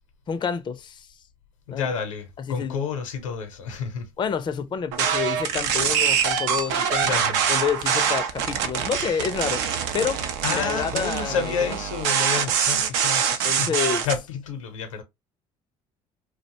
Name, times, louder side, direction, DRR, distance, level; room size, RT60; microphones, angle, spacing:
voice 1, 0.3-1.1 1.7-1.9 2.4-2.7 4.2-7.2 7.5-9.6 9.9-10.2 10.5-11.8 13.4-14.1, left 7 dB, 30° left, 0.4 m, -28 dB
voice 2, 1.7-4.1 7.0-7.4 10.4-13.8 14.0-15.0, left 6 dB, 90° left, 0.6 m, -30 dB
sound 1, 4.9-14.2, right 7 dB, 75° right, 0.4 m, -24 dB
2.5 x 2.1 x 2.8 m
hypercardioid pair, 60°, 16 cm